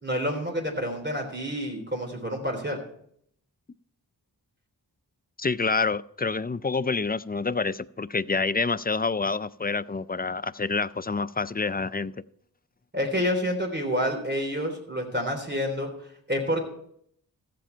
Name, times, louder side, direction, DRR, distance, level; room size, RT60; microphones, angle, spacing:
voice 1, 0.0-2.8 12.9-15.9 16.3-16.6, equal, 25° right, 3 dB, 3.4 m, -28 dB
voice 2, 5.4-12.1, left 4 dB, 25° left, 16 dB, 0.3 m, -27 dB
14.5 x 7.6 x 4.5 m, 0.67 s
wide cardioid pair, 40°, 42 cm